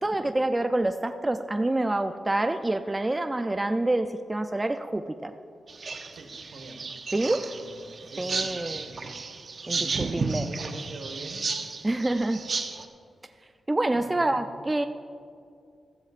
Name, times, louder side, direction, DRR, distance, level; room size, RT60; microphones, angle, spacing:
voice 1, 0.0-5.3 7.1-7.4 8.2-8.9 9.7-10.5 11.8-12.4 13.7-14.9, right 2 dB, 15° right, 8 dB, 0.3 m, -27 dB
sound 1, 5.7-12.8, right 4 dB, 50° right, 0.7 m, -33 dB
voice 2, 6.1-6.8 7.2-7.8 8.1-8.5 8.7-9.0 9.7-11.4 13.2-13.5 13.9-14.4, right 2 dB, 75° right, 4 dB, 1.4 m, -43 dB
15.0 x 14.0 x 2.5 m, 2.3 s
wide cardioid pair, 135°, 0 cm